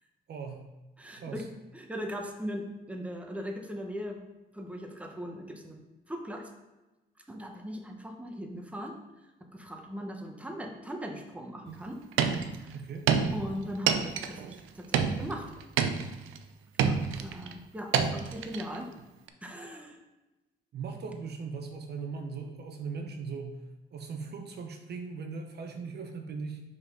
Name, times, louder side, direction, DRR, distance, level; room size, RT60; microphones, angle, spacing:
voice 1, 0.3-0.6 1.1-1.5 12.7-13.1 20.7-23.6 23.9-26.6, right 5 dB, 55° right, 5 dB, 0.8 m, -39 dB
voice 2, 1.0-1.4 1.7-4.2 4.5-5.8 6.1-6.5 7.3-8.9 9.5-12.0 12.5-12.7 13.3-15.5 16.8-18.9 19.4-20.0, equal, 5° right, 2 dB, 1.0 m, -39 dB
sound 1, 11.7-11.8 12.1-12.7 13.1-14.6 14.9-16.4 16.8-17.5 17.9-18.8 19.3-19.4, right 7 dB, 90° right, 0.5 m, -28 dB
5.3 x 4.0 x 5.3 m, 1.1 s
cardioid pair, 90°, 20 cm